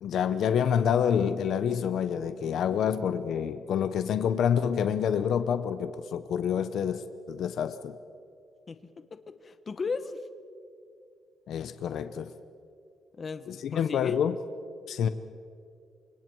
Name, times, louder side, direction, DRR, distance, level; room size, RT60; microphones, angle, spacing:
voice 1, 0.0-8.0 11.5-12.3 13.5-14.4 14.9-15.1, left 8 dB, 65° left, 0.8 m, -27 dB
voice 2, 9.1-10.2 13.2-14.2, left 4 dB, 30° left, 1.1 m, -36 dB
29.0 x 25.5 x 4.7 m
cardioid pair, 155°, 0 cm